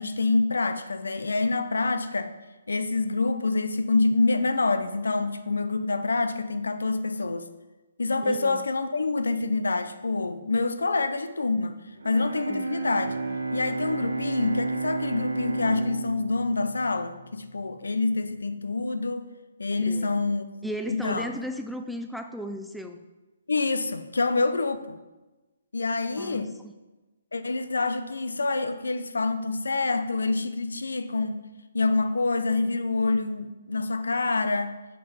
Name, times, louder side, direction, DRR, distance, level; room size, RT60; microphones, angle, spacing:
voice 1, 0.0-2.3 2.7-7.5 8.0-11.8 12.0-13.1 13.5-19.3 19.6-20.5 20.9-21.3 23.5-25.0 25.7-26.5 27.3-31.4 31.7-34.8, left 3 dB, 85° left, 11 dB, 0.5 m, -26 dB
voice 2, 8.2-8.7 12.5-12.7 19.8-20.1 20.6-23.0 26.2-26.7, equal, ahead, 6 dB, 0.3 m, -36 dB
Bowed string instrument, 12.0-18.0, right 3 dB, 80° right, 0.6 m, -32 dB
6.7 x 5.4 x 3.4 m, 1.1 s
hypercardioid pair, 145°, 0 cm